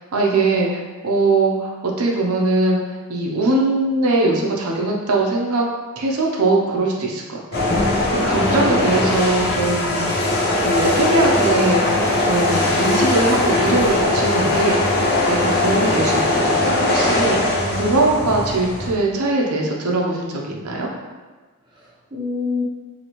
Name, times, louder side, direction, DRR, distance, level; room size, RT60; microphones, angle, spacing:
voice 1, 0.1-2.8 3.1-5.7 6.0-7.2 7.7-10.2 10.6-11.8 12.2-15.0 15.3-17.4 17.7-20.9, right 2 dB, 90° right, -1 dB, 0.6 m, -21 dB
sound 1, 7.5-18.9, left 2 dB, 50° left, 0.7 m, -20 dB
voice 2, 8.3-8.8 17.5-18.3 21.7-22.6, left 2 dB, 20° right, -6 dB, 0.7 m, -29 dB
4.2 x 2.8 x 3.0 m, 1.3 s
head